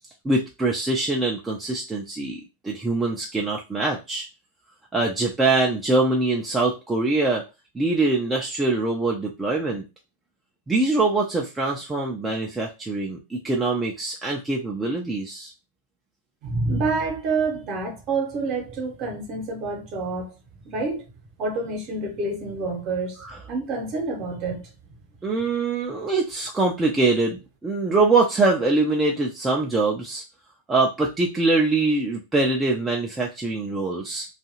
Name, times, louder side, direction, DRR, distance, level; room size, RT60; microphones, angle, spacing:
voice 1, 0.2-4.3 4.9-7.4 7.7-9.9 10.7-15.5 23.2-23.4 25.2-30.2 30.7-34.3, right 3 dB, 10° right, 0.5 m, -23 dB
voice 2, 16.4-20.3 20.6-21.0 21.4-23.2 23.5-24.6, right 3 dB, 40° right, 0.9 m, -27 dB
2.6 x 2.4 x 2.8 m
figure-of-eight pair, 90°, 0 cm